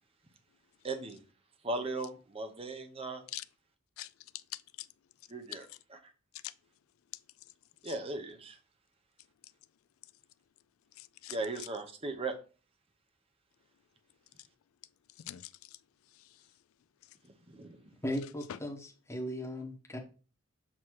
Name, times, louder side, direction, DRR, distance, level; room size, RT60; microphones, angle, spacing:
voice 1, 0.8-1.2 1.6-3.2 5.3-5.6 7.8-8.6 11.3-12.3 17.5-17.8, right 2 dB, 25° right, 0.7 m, -37 dB
voice 2, 4.0-4.9 5.5-5.8 6.3-6.5 7.1-7.5 7.8-8.0 9.4-9.5 10.9-11.7 14.4-14.5 15.1-16.5 17.0-17.2 18.5-18.6, left 14 dB, 70° left, 0.3 m, -46 dB
voice 3, 18.0-18.8 19.1-20.0, equal, 10° left, 1.1 m, -36 dB
7.6 x 2.8 x 4.6 m
head